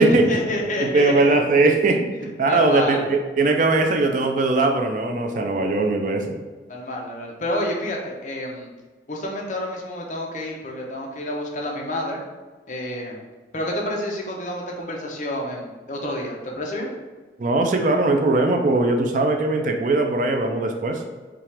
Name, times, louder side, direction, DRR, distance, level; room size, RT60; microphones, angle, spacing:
voice 1, 0.1-1.4 2.2-3.0 6.7-8.7 9.1-12.2 12.7-13.2 13.5-16.9, left 1 dB, 45° left, -1 dB, 0.8 m, -29 dB
voice 2, 0.8-2.1 2.4-6.4 17.4-21.0, right 2 dB, 45° right, 4 dB, 0.4 m, -20 dB
5.7 x 2.4 x 3.4 m, 1.3 s
head